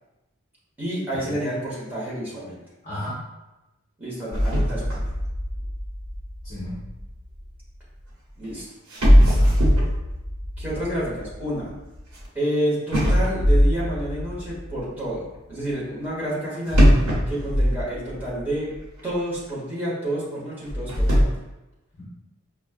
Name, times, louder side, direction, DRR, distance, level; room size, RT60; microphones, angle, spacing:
voice 1, 0.8-2.6 4.0-5.1 8.4-8.6 10.6-11.7 12.3-16.9 17.3-18.7 19.0-21.2, right 1 dB, 10° right, -8 dB, 1.1 m, -29 dB
voice 2, 2.8-3.2 6.4-6.8 9.1-9.5 22.0-22.1, equal, 30° left, -11 dB, 1.0 m, -34 dB
sound 1, 4.3-7.5 8.4-8.5 8.9-12.3 12.9-14.8 16.7-18.5 18.8-18.9 19.5-19.6 20.6-21.2, equal, 75° right, 1.1 m, -20 dB
5.1 x 2.2 x 2.4 m, 1.0 s
head